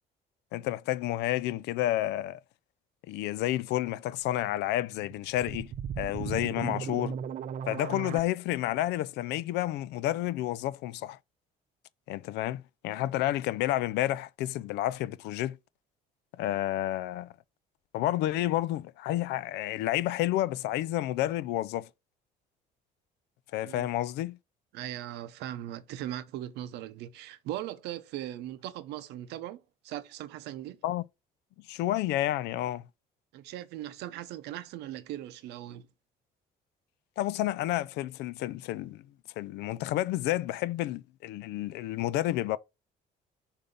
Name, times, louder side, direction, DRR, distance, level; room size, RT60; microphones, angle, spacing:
voice 1, 0.5-2.4 3.1-7.2 7.7-11.2 12.1-15.6 16.4-17.3 17.9-21.9 23.5-24.4 30.8-31.0 31.7-32.9 37.2-39.0 39.4-42.6, left 14 dB, 85° left, 0.4 m, -30 dB
sound 1, 4.9-8.2, right 8 dB, 50° right, 0.5 m, -36 dB
voice 2, 24.7-30.8 33.3-35.9, right 13 dB, 85° right, 0.7 m, -39 dB
6.7 x 2.7 x 5.2 m
cardioid pair, 110°, 17 cm